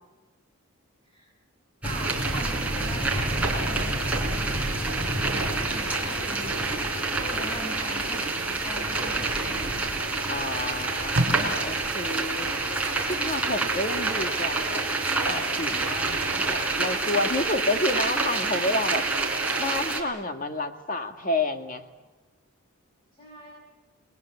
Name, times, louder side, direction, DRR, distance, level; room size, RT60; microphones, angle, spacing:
voice 1, 1.8-4.9 5.2-6.5 6.8-9.9 23.1-23.5, equal, 20° left, -1 dB, 6.7 m, -41 dB
sound 1, 1.8-20.0, right 3 dB, 5° right, 3.8 m, -27 dB
voice 2, 10.3-14.8 15.3-19.1 19.6-21.8, left 2 dB, 35° left, 5 dB, 2.0 m, -30 dB
Packing tape duct tape, 10.7-13.5 14.0-14.2, right 1 dB, 55° right, 4.2 m, -35 dB
29.0 x 21.0 x 8.6 m, 1.2 s
head